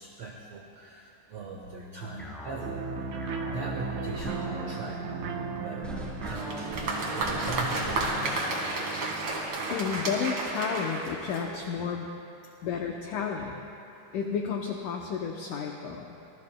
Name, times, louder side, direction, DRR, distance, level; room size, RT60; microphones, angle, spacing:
voice 1, 0.0-2.8 3.5-7.8, right 3 dB, 90° right, 0 dB, 1.4 m, -40 dB
sound 1, 1.4-8.6, left 1 dB, ahead, 3.1 m, -41 dB
sound 2, 2.6-11.0, right 5 dB, 70° right, 1.9 m, -37 dB
Applause, 6.2-11.8, right 2 dB, 45° right, 2.2 m, -32 dB
voice 2, 9.7-12.1 12.6-13.6 14.1-16.2, left 6 dB, 75° left, 1 dB, 1.9 m, -32 dB
26.0 x 19.5 x 2.2 m, 2.7 s
omnidirectional pair, 4.5 m